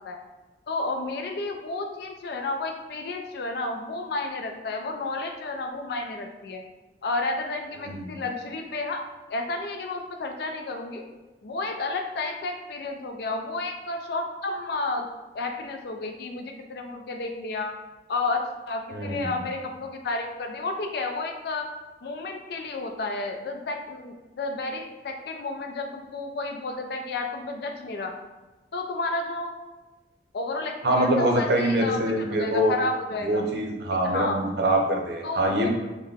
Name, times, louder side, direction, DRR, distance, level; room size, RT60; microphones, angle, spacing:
voice 1, 0.7-6.6 7.0-9.0 9.3-11.0 11.4-15.1 15.3-17.7 18.1-21.7 22.0-28.1 28.7-29.5 30.3-33.5 33.9-34.4 35.2-35.7, left 3 dB, 65° left, 4 dB, 0.4 m, -31 dB
voice 2, 7.8-8.2 18.9-19.3 30.8-32.7 33.2-35.7, right 1 dB, 65° right, 1 dB, 0.6 m, -24 dB
3.8 x 2.1 x 3.4 m, 1.2 s
head